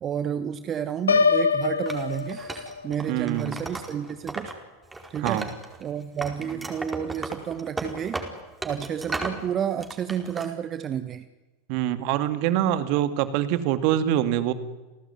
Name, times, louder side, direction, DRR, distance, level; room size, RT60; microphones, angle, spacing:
voice 1, 0.0-4.6 5.1-5.5 5.8-8.2 8.6-11.2, right 8 dB, 30° right, 12 dB, 1.4 m, -31 dB
Piano, 1.1-3.0, left 5 dB, 80° left, 1.6 m, -23 dB
Wood, 1.9-4.5 4.8-5.9 6.2-9.4 9.8-10.5, right 2 dB, 10° right, 4.7 m, -35 dB
voice 2, 3.1-3.6 5.2-5.5 11.7-14.5, right 12 dB, 50° right, 12 dB, 2.2 m, -24 dB
29.0 x 18.0 x 9.6 m, 1.1 s
figure-of-eight pair, 80°, 0 cm